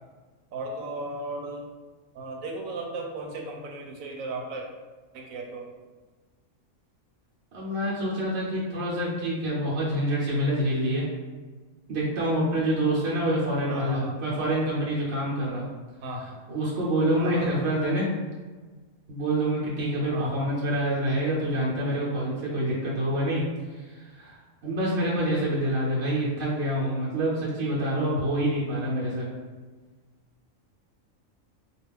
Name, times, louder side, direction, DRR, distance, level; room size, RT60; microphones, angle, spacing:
voice 1, 0.5-1.7 2.1-4.7 5.1-5.7 13.7-14.2 16.0-16.3 17.2-17.6 20.1-20.4, right 2 dB, 90° right, 1 dB, 1.0 m, -35 dB
voice 2, 7.5-11.1 11.9-15.7 16.5-18.1 19.1-23.4 23.9-24.4 24.6-29.3, right 1 dB, 60° right, -7 dB, 0.9 m, -26 dB
2.3 x 2.3 x 3.4 m, 1.3 s
omnidirectional pair, 1.3 m